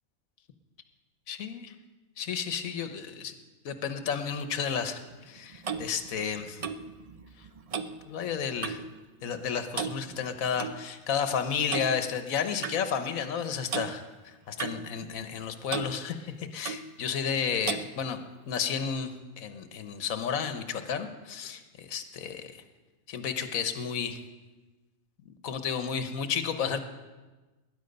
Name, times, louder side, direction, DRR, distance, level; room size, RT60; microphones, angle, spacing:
voice 1, 1.3-1.7 2.2-3.3 3.6-5.0 5.3-6.6 8.1-8.8 9.2-14.0 14.5-18.2 18.5-19.1 19.4-22.6 23.1-24.2 25.4-26.8, left 7 dB, 75° left, 9 dB, 1.4 m, -32 dB
Clock, 5.1-9.0 9.2-9.5 9.7-10.8 11.7-11.9 12.6-12.8 13.7-13.9 14.6-15.4 15.7-15.9 16.6-16.9 17.6-17.9, right 6 dB, 65° right, 0.3 m, -36 dB
19.5 x 10.0 x 5.3 m, 1.2 s
omnidirectional pair, 1.5 m